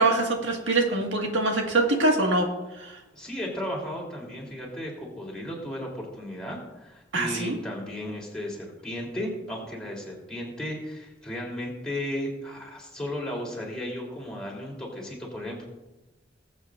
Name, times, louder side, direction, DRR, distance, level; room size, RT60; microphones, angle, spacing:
voice 1, 0.0-2.5 2.8-3.0 7.1-7.6, right 2 dB, 90° right, 1 dB, 1.8 m, -24 dB
voice 2, 3.1-15.7, left 1 dB, 5° left, -3 dB, 3.3 m, -35 dB
20.5 x 8.0 x 2.5 m, 1.0 s
head